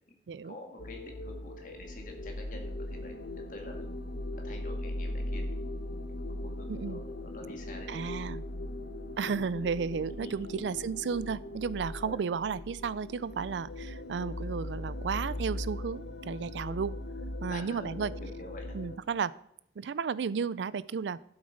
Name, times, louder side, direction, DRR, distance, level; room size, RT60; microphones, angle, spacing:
voice 1, 0.4-3.9 4.4-5.7 6.1-8.1 10.2-10.5 12.0-12.2 17.5-18.7, left 2 dB, 45° left, 2 dB, 2.1 m, -48 dB
sound 1, 0.8-19.0, left 1 dB, 80° left, 0.8 m, -39 dB
voice 2, 6.7-7.0 7.9-8.4 9.2-16.9 17.4-18.1 18.7-19.3 19.8-21.2, right 6 dB, 85° right, 20 dB, 0.4 m, -33 dB
12.0 x 8.0 x 5.2 m, 0.74 s
head